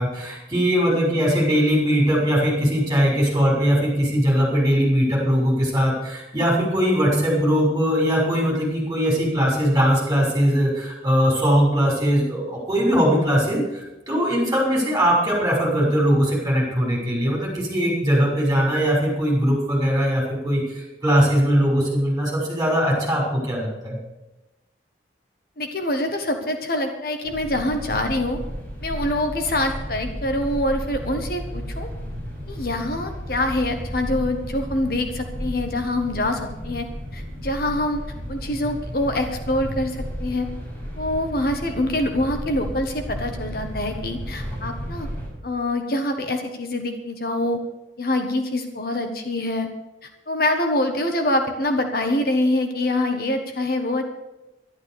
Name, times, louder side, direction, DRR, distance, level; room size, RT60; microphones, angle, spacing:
voice 1, 0.0-24.0, equal, 20° right, -3 dB, 6.3 m, -20 dB
voice 2, 25.6-28.4 28.8-31.9 32.5-36.9 37.1-38.0 38.3-40.5 41.0-45.1 45.4-47.6 48.0-49.7 50.0-54.0, left 1 dB, 55° left, 5 dB, 1.4 m, -25 dB
sound 1, 27.2-45.3, equal, 10° left, 6.6 m, -33 dB
12.0 x 11.5 x 6.8 m, 1.0 s
head